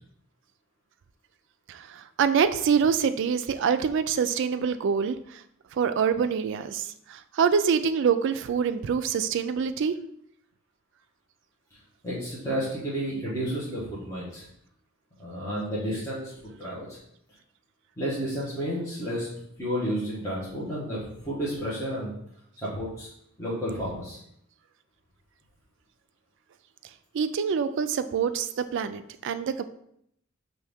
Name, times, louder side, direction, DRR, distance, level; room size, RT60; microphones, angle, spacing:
voice 1, 2.2-5.2 5.8-6.9 7.4-10.0 27.1-29.6, right 6 dB, 60° right, 10 dB, 0.3 m, -25 dB
voice 2, 12.0-14.5 15.2-17.0 18.0-19.3 19.6-22.1 22.6-23.1 23.4-24.2, equal, 15° left, -9 dB, 1.1 m, -31 dB
5.6 x 2.7 x 3.5 m, 0.72 s
head